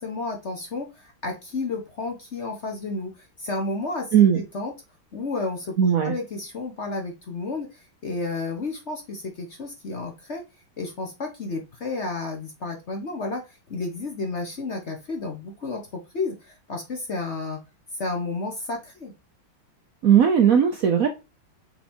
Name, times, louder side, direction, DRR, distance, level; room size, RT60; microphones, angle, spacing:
voice 1, 0.0-4.1 4.3-4.7 5.1-10.4 10.8-15.8 16.1-17.6 17.9-19.1, left 3 dB, 45° left, 1.1 m, -31 dB
voice 2, 5.8-6.1 20.0-21.1, right 8 dB, 65° right, 0.9 m, -17 dB
5.7 x 4.2 x 4.3 m
omnidirectional pair, 2.2 m